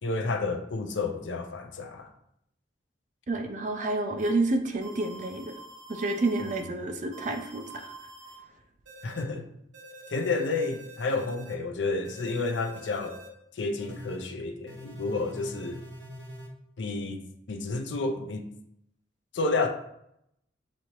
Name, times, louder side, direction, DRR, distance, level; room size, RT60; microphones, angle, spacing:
voice 1, 0.0-2.1 6.4-6.6 9.0-9.5 10.1-13.2 13.5-15.8 16.8-18.5 19.3-19.7, left 3 dB, 80° left, 5 dB, 0.5 m, -30 dB
voice 2, 3.3-5.5 5.9-7.9, right 2 dB, 40° right, 5 dB, 0.4 m, -29 dB
sound 1, 4.2-4.3 4.8-6.6 7.1-8.4 8.9-9.2 9.7-11.5 12.0-13.3 13.8-14.2 14.7-16.5, right 1 dB, 80° right, 0.9 m, -46 dB
6.2 x 2.7 x 3.0 m, 0.78 s
head